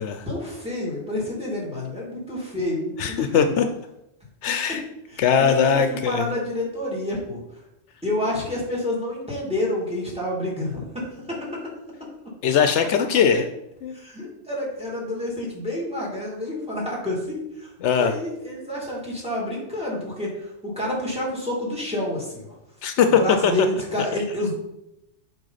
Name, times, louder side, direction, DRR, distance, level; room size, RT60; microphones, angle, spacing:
voice 1, 0.3-3.5 5.1-7.4 8.0-11.4 13.3-13.4 13.9-17.7 18.0-22.5 23.1-24.5, left 1 dB, 5° right, -3 dB, 2.3 m, -29 dB
voice 2, 3.0-3.7 4.4-4.8 5.2-6.3 12.4-13.5 13.8-14.0 17.8-18.2 22.8-23.5, left 7 dB, 75° left, 8 dB, 0.9 m, -20 dB
7.8 x 4.6 x 4.0 m, 0.85 s
omnidirectional pair, 1.2 m